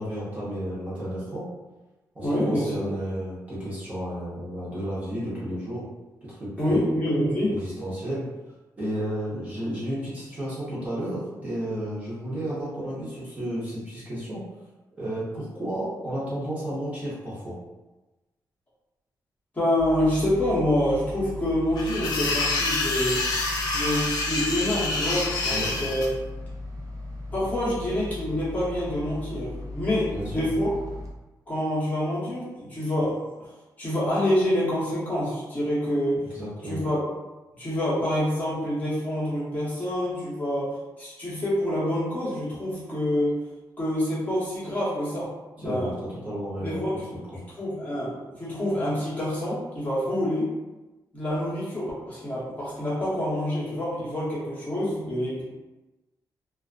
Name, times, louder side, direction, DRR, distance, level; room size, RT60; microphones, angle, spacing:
voice 1, 0.0-1.5 2.1-5.8 6.2-6.8 7.5-8.3 8.8-14.4 15.0-17.6 25.5-25.7 30.1-30.5 36.3-36.9 45.6-45.9 46.2-47.0 47.3-47.4, equal, 20° right, -10 dB, 0.8 m, -32 dB
voice 2, 2.2-2.9 6.6-7.6 19.5-23.3 23.7-26.1 27.3-30.7 31.5-33.5 33.8-36.3 36.6-37.0 37.6-43.4 43.8-45.3 45.6-45.9 46.6-47.1 47.6-50.5 51.1-55.4, left 1 dB, 20° left, -10 dB, 0.9 m, -27 dB
sound 1, 19.8-31.1, left 2 dB, 50° right, 0.5 m, -37 dB
sound 2, 21.8-26.1, left 3 dB, 65° left, 0.5 m, -27 dB
2.4 x 2.3 x 2.3 m, 1.1 s
wide cardioid pair, 160°, 7 cm